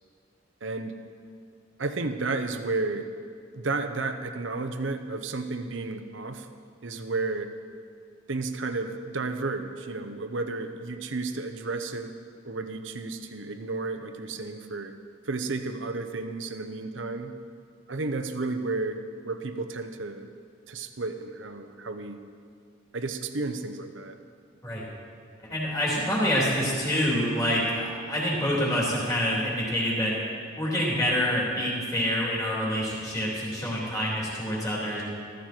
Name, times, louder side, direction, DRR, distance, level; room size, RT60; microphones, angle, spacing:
voice 1, 0.6-1.0 1.8-3.1 3.5-6.5 6.8-7.5 8.3-12.1 12.4-14.9 15.2-17.3 17.9-20.3 20.7-22.2 22.9-24.1, right 3 dB, 65° right, 8 dB, 0.9 m, -32 dB
voice 2, 25.4-30.1 30.6-35.0, equal, 15° left, -5 dB, 3.4 m, -27 dB
14.5 x 14.5 x 4.5 m, 2.2 s
head